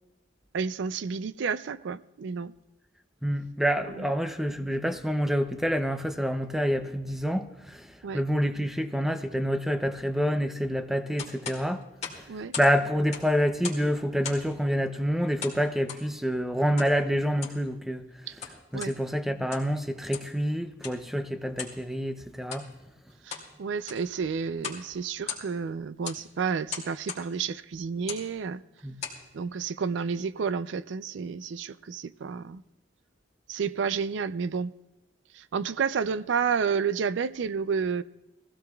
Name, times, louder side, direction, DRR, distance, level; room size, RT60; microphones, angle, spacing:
voice 1, 0.5-2.5 3.9-4.1 8.0-8.2 12.3-12.6 18.3-18.4 18.7-18.9 23.2-28.6 29.3-32.6 33.5-34.7 35.3-38.0, right 6 dB, 70° right, 0.4 m, -30 dB
voice 2, 3.2-11.8 12.6-18.1 18.7-22.7 28.8-29.0, equal, ahead, 0.5 m, -27 dB
sound 1, 11.2-12.7 13.0-13.9 14.2-14.6 15.4-16.1 16.8-16.9 17.3-17.6 18.2-19.0 19.4-19.8 20.1-20.4 20.8-21.0 21.6-21.8 22.4-22.7 23.1-23.5 23.8-24.1 24.6-24.9 25.1-25.7 26.0-26.2 26.7-27.3 28.0-28.3 28.8-29.2, left 6 dB, 35° left, 2.2 m, -38 dB
21.0 x 15.5 x 2.3 m
head